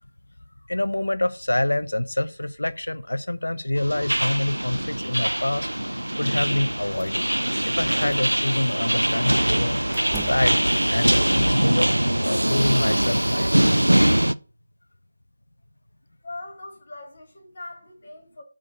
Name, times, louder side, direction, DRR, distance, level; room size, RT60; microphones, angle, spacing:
voice 1, 0.7-5.7 6.2-7.2 7.7-9.8 10.3-10.6 10.9-11.9 12.2-13.5, left 1 dB, 75° left, 0.7 m, -26 dB
sound 1, 3.8-14.3, right 1 dB, 85° right, 0.4 m, -22 dB
sound 2, 6.9-7.4 7.8-8.9 9.9-10.8, right 5 dB, 5° right, 0.4 m, -43 dB
voice 2, 16.2-18.4, left 2 dB, 40° left, 2.6 m, -40 dB
8.2 x 3.8 x 6.6 m
figure-of-eight pair, 160°, 0 cm